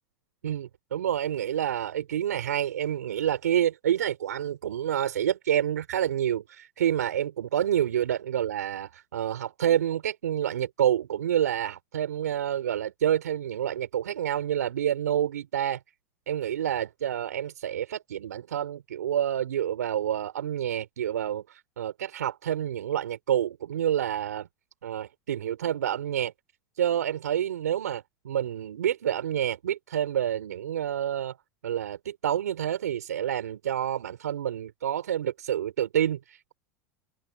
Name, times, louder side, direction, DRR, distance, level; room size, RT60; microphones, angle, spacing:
voice 1, 0.4-15.8 16.3-24.5 24.8-26.3 26.8-31.4 31.6-36.5, right 10 dB, 85° right, 4.2 m, -28 dB
hypercardioid pair, 95°, 9 cm